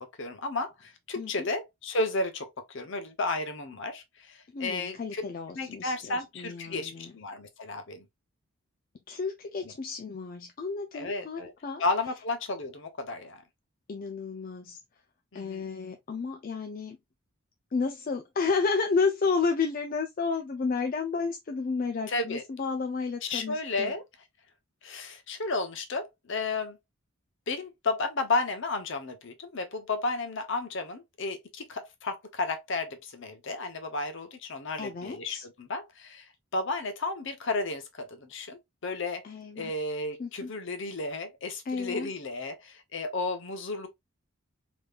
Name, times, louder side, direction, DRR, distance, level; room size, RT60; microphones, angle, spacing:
voice 1, 0.0-5.2 5.5-8.0 9.6-9.7 10.9-11.5 11.8-13.4 15.3-15.7 22.1-22.4 23.2-24.0 24.8-26.8 27.5-36.3 36.5-39.2 39.5-43.9, left 3 dB, 60° left, 0.8 m, -33 dB
voice 2, 1.2-1.5 4.5-7.1 9.1-11.8 13.9-14.8 15.3-17.0 17.7-23.9 34.8-35.5 39.2-39.7 40.2-40.5 41.7-42.1, left 4 dB, 40° left, 0.4 m, -31 dB
3.5 x 3.0 x 2.3 m
head